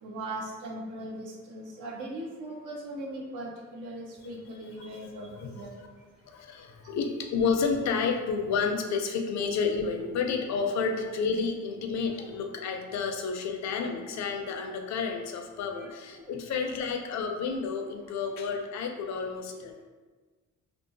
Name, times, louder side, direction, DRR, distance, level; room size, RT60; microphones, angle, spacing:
voice 1, 0.0-5.7 12.1-12.3 14.0-14.2 15.8-15.9 16.3-16.4, right 1 dB, 85° right, -1 dB, 0.7 m, -39 dB
voice 2, 4.9-5.6 6.3-19.8, left 5 dB, 65° left, 4 dB, 0.4 m, -30 dB
2.6 x 2.3 x 2.6 m, 1.3 s
cardioid pair, 90°, 30 cm